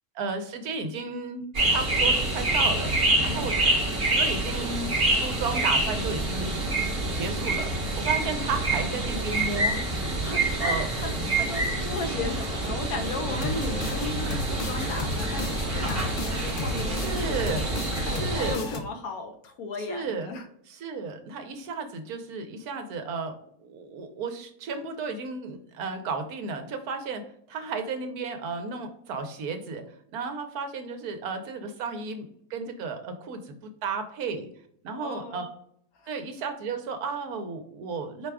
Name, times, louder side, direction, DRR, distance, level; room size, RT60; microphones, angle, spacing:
voice 1, 0.1-2.9 3.2-3.7 4.2-6.5 7.1-9.8 10.6-10.9 16.9-17.7 18.0-18.6 19.8-20.3 20.7-23.3 23.6-27.2 27.5-29.8 30.1-34.5 34.8-35.5 36.1-38.3, right 4 dB, 80° right, 6 dB, 1.3 m, -33 dB
sound 1, 1.5-18.6, right 2 dB, 45° right, 1.2 m, -27 dB
voice 2, 10.2-10.7 11.0-17.4 18.0-20.5 34.9-35.5 36.0-36.1, left 3 dB, 75° left, 5 dB, 1.2 m, -36 dB
sound 2, 13.3-18.8, left 2 dB, 55° left, 0.6 m, -33 dB
4.8 x 2.3 x 4.7 m, 0.67 s
omnidirectional pair, 1.6 m